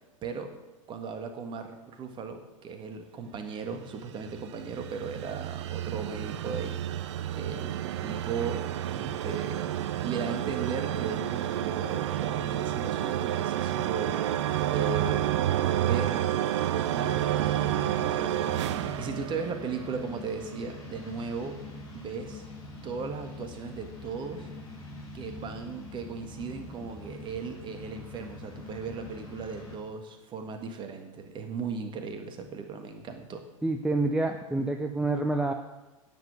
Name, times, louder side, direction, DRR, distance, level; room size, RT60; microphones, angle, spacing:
voice 1, 0.2-0.5 0.9-6.8 7.3-8.6 8.9-9.6 10.0-14.1 14.7-15.3 15.8-16.3 16.9-18.4 18.7-21.6 21.9-22.4 22.8-24.5 25.1-33.4, right 5 dB, 25° right, 6 dB, 1.7 m, -37 dB
sound 1, 3.9-20.0, right 12 dB, 55° right, 0.6 m, -30 dB
sound 2, 17.3-29.8, left 2 dB, 25° left, 4.0 m, -44 dB
voice 2, 33.6-35.5, right 2 dB, 5° right, 4 dB, 0.7 m, -27 dB
10.5 x 7.9 x 7.7 m, 1.1 s
figure-of-eight pair, 90°, 17 cm